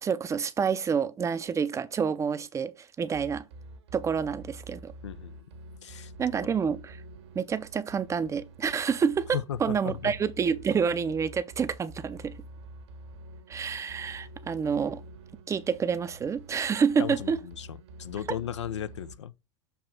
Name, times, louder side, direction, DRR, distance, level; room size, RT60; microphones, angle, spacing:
voice 1, 0.0-3.4 3.9-4.9 6.2-7.0 7.3-12.4 13.5-15.0 15.5-17.4, right 6 dB, 20° right, 0.6 m, -28 dB
sound 1, 3.1-19.1, right 1 dB, 60° right, 1.3 m, -47 dB
voice 2, 5.0-5.4 5.8-6.1 6.4-6.5 9.3-10.1 17.0-19.3, left 9 dB, 70° left, 0.6 m, -36 dB
7.0 x 3.2 x 5.8 m
figure-of-eight pair, 90°, 15 cm